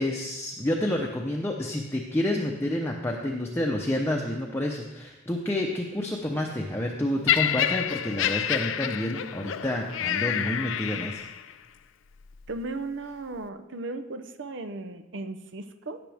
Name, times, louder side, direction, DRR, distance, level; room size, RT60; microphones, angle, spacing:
voice 1, 0.0-11.2, left 1 dB, 10° left, -1 dB, 0.8 m, -29 dB
Laughter, 7.3-11.5 12.3-12.5, left 10 dB, 75° left, 0.5 m, -28 dB
voice 2, 12.5-16.0, right 2 dB, 65° right, 9 dB, 0.8 m, -36 dB
16.5 x 6.9 x 3.5 m, 1.0 s
head